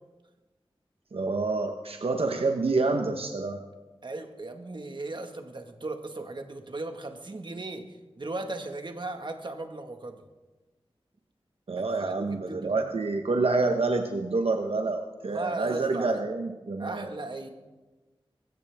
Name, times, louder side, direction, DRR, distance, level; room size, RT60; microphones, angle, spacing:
voice 1, 1.1-3.6 11.7-17.1, right 3 dB, 80° right, 4 dB, 1.0 m, -27 dB
voice 2, 4.0-10.2 11.8-12.9 15.2-16.2 16.8-17.5, right 2 dB, 55° right, 5 dB, 1.7 m, -37 dB
23.0 x 15.0 x 3.5 m, 1.2 s
wide cardioid pair, 80°, 10 cm